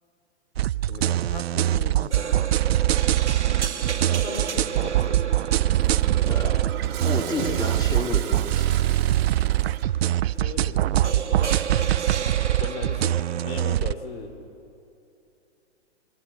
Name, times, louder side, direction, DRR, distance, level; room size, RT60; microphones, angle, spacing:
sound 1, 0.6-13.9, right 13 dB, 65° right, 0.6 m, -23 dB
voice 1, 0.9-2.5 4.1-5.5 7.4-7.8 10.4-12.1 12.5-14.3, left 4 dB, 60° left, 7 dB, 3.2 m, -38 dB
sound 2, 2.1-13.7, right 7 dB, 90° right, 1.5 m, -34 dB
Toilet flush, 5.7-10.0, right 11 dB, 30° right, 2.5 m, -39 dB
voice 2, 6.3-6.7 7.0-8.8, left 2 dB, 10° left, 2 dB, 2.4 m, -31 dB
28.0 x 21.5 x 8.3 m, 2.7 s
hypercardioid pair, 130°, 34 cm